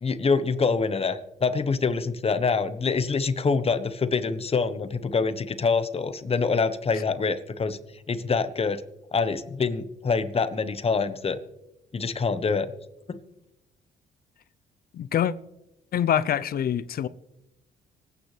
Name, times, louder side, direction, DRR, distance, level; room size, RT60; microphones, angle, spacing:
voice 1, 0.0-7.8 8.1-8.8 9.1-11.4 11.9-12.7 13.1-13.2, left 4 dB, 35° left, 1.0 m, -25 dB
voice 2, 14.9-15.3 15.9-17.1, left 9 dB, 60° left, 0.6 m, -25 dB
25.0 x 9.2 x 3.3 m
cardioid pair, 80°, 17 cm